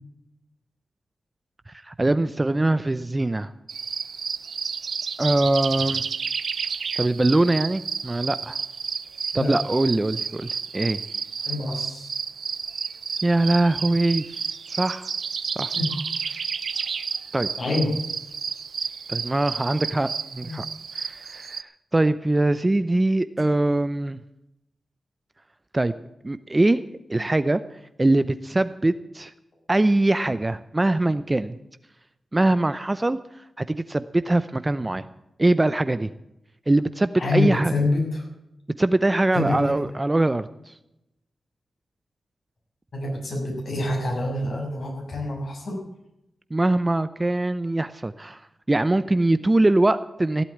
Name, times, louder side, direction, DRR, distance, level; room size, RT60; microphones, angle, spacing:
voice 1, 1.7-3.5 5.2-6.0 7.0-8.6 9.3-11.0 13.2-14.4 14.7-15.1 15.6-15.7 16.3-16.4 17.3-17.5 19.1-20.7 20.9-21.6 21.9-24.2 25.7-25.9 26.2-26.8 27.1-27.6 28.0-29.3 29.7-31.6 32.3-33.2 33.6-35.1 35.4-36.1 36.7-37.7 38.8-40.7 46.5-48.4 48.7-50.4, right 2 dB, 25° right, 13 dB, 0.7 m, -22 dB
sound 1, 3.7-21.6, right 6 dB, 75° right, 0.6 m, -31 dB
voice 2, 11.5-12.1 15.7-16.0 17.6-17.9 20.4-20.6 37.1-38.2 39.3-39.7 42.9-45.8, left 2 dB, 65° left, -1 dB, 6.7 m, -26 dB
16.0 x 8.3 x 8.7 m, 0.85 s
cardioid pair, 55°, 0 cm